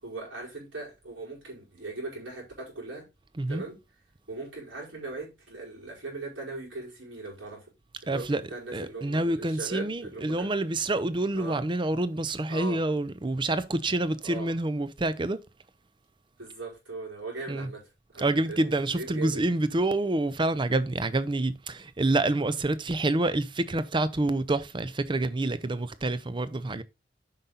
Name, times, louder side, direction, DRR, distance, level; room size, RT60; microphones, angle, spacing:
voice 1, 0.0-3.1 3.5-3.8 4.3-7.7 8.0-10.5 11.3-11.6 12.5-12.8 14.2-14.5 16.4-19.4, right 3 dB, 80° right, 5.2 m, -39 dB
voice 2, 8.1-8.4 8.7-15.4 17.5-17.7 18.2-26.8, right 2 dB, 25° right, 0.6 m, -27 dB
7.8 x 5.7 x 3.9 m
head